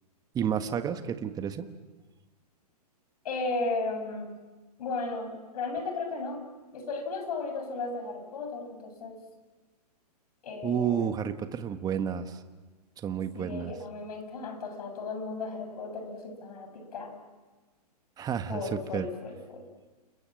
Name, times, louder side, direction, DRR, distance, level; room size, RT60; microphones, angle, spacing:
voice 1, 0.3-1.7 10.6-12.4 13.0-13.7 18.2-19.1, right 8 dB, 20° right, 9 dB, 1.4 m, -31 dB
voice 2, 3.2-4.4 4.8-6.4 6.7-9.2 10.4-11.1 13.3-17.2 18.5-19.7, left 3 dB, 70° left, 6 dB, 7.5 m, -35 dB
30.0 x 21.5 x 7.8 m, 1.3 s
hypercardioid pair, 135°, 20 cm